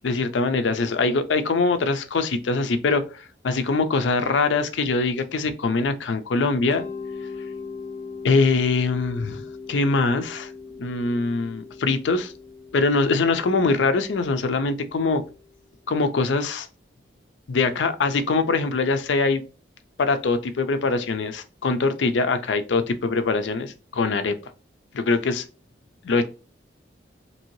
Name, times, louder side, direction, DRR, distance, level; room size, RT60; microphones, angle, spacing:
voice 1, 0.0-6.8 8.2-9.4 9.7-10.5 10.8-12.3 12.7-15.2 15.9-16.7 17.5-19.4 20.0-24.3 24.9-25.4 26.0-26.3, left 3 dB, 80° left, 0.5 m, -23 dB
Mallet percussion, 6.7-15.5, left 4 dB, 15° left, 0.8 m, -39 dB
3.0 x 2.7 x 2.9 m
head